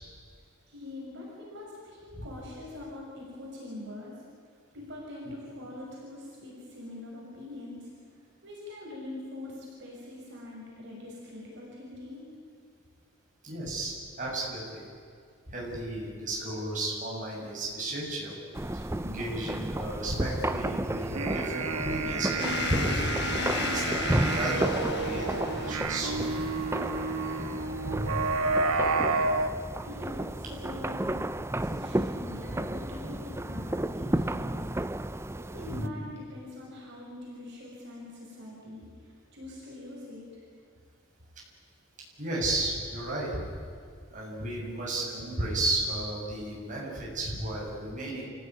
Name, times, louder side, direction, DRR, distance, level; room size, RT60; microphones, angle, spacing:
voice 1, 0.7-4.2 4.7-7.9 8.4-12.2 29.6-31.3 31.6-34.6 35.4-40.4, left 2 dB, 55° right, -4 dB, 6.4 m, -43 dB
voice 2, 13.4-14.8 15.5-18.4 18.7-23.1 23.6-26.2 27.8-28.2 35.7-35.9 42.2-43.5 44.1-48.2, right 1 dB, 35° right, -4 dB, 7.6 m, -33 dB
sound 1, 18.5-35.9, right 1 dB, 10° right, 0.5 m, -33 dB
sound 2, 21.0-29.5, right 3 dB, 90° right, 1.3 m, -30 dB
sound 3, 22.4-28.9, left 5 dB, 50° left, 1.3 m, -36 dB
29.0 x 16.5 x 9.7 m, 2.2 s
head